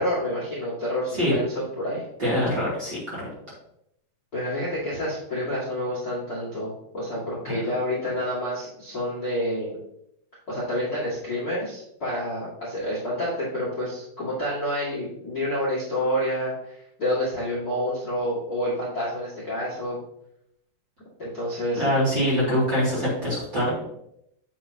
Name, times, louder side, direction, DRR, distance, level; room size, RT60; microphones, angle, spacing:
voice 1, 0.0-2.0 4.3-9.7 10.5-20.0 21.2-21.9, equal, 70° left, -8 dB, 0.9 m, -28 dB
voice 2, 2.2-3.3 7.5-7.6 21.7-23.7, equal, 35° right, -8 dB, 2.2 m, -24 dB
8.2 x 7.4 x 2.8 m, 0.76 s
omnidirectional pair, 5.7 m